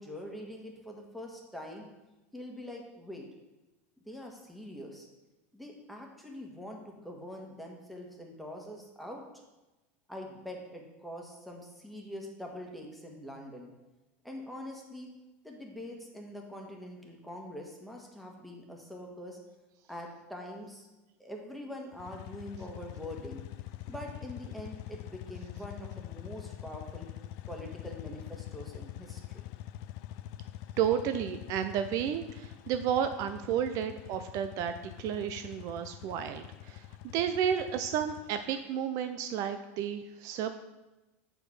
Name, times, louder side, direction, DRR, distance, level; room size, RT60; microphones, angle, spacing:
voice 1, 0.0-1.9 2.3-3.3 4.0-5.1 5.5-9.2 10.1-13.7 14.2-15.1 15.4-19.4 19.9-20.9 21.2-23.4 23.9-27.1 27.5-29.4, left 1 dB, ahead, 0 dB, 1.4 m, -44 dB
sound 1, 21.9-38.6, left 14 dB, 60° left, 0.3 m, -45 dB
voice 2, 30.8-36.9 37.1-40.5, right 9 dB, 50° right, 9 dB, 0.4 m, -32 dB
6.5 x 4.8 x 4.8 m, 1.1 s
supercardioid pair, 115°, 7 cm